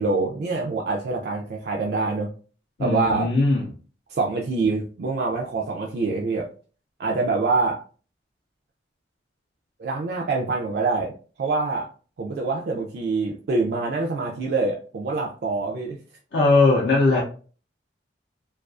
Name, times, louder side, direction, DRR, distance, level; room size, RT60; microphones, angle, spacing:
voice 1, 0.0-2.3 2.8-3.3 4.1-6.5 7.0-7.8 9.8-11.1 11.4-11.9 12.2-16.0, right 3 dB, 55° right, 0.3 m, -25 dB
voice 2, 2.8-3.7 16.3-17.2, left 3 dB, 65° left, 0.5 m, -19 dB
2.3 x 2.3 x 2.4 m
head